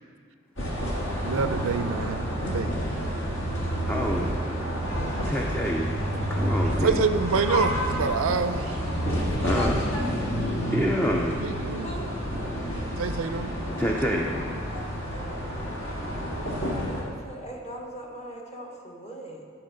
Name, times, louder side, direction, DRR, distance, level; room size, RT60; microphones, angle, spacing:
sound 1, 0.6-17.0, equal, 60° left, 1.6 m, -29 dB
voice 1, 1.2-2.8 6.8-8.8 11.4-11.9 13.0-13.5, right 5 dB, 75° right, 10 dB, 0.4 m, -27 dB
voice 2, 3.8-4.7 5.3-5.9 6.3-7.1 9.4-9.7 10.7-11.4 13.8-14.3, equal, 10° left, 0 dB, 0.4 m, -27 dB
voice 3, 9.4-10.1 11.8-12.1 14.7-14.8 15.1-15.4 16.5-19.4, equal, 30° left, -1 dB, 1.2 m, -39 dB
11.0 x 4.4 x 6.2 m, 2.2 s
head